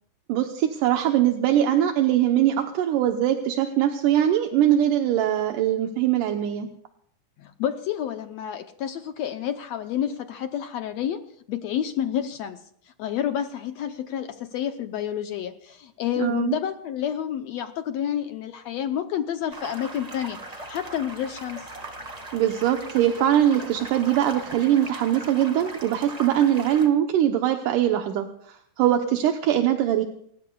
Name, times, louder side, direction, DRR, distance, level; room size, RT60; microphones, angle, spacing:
voice 1, 0.3-6.7 16.2-16.6 22.3-30.0, right 11 dB, 80° right, 5 dB, 2.5 m, -22 dB
voice 2, 7.4-11.2 11.5-12.6 12.8-21.7, left 10 dB, 75° left, 8 dB, 1.6 m, -29 dB
sound 1, 19.5-26.9, right 2 dB, 25° right, 0.8 m, -39 dB
29.5 x 15.0 x 2.3 m, 0.68 s
omnidirectional pair, 3.8 m